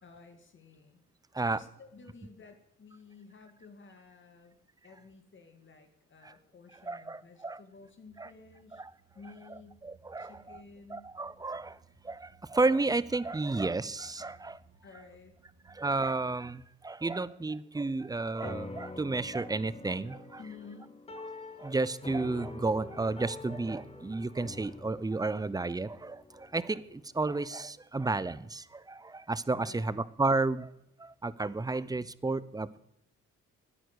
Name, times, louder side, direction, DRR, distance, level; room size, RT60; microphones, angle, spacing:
voice 1, 0.0-1.1 1.4-4.6 4.8-8.8 9.1-9.8 10.2-11.1 14.8-15.4 20.4-21.0 29.6-30.1, left 4 dB, 40° left, 6 dB, 2.1 m, -53 dB
voice 2, 6.9-7.6 8.2-8.3 8.7-8.9 9.8-10.6 10.9-11.8 12.0-14.6 15.7-20.4 21.6-30.7 31.0-32.8, right 3 dB, 15° right, 18 dB, 0.6 m, -32 dB
sound 1, 8.1-16.5, right 4 dB, 45° right, 1.9 m, -62 dB
sound 2, 18.4-27.1, left 2 dB, 20° left, 1.7 m, -46 dB
13.0 x 10.0 x 8.2 m, 0.78 s
cardioid pair, 90°, 30 cm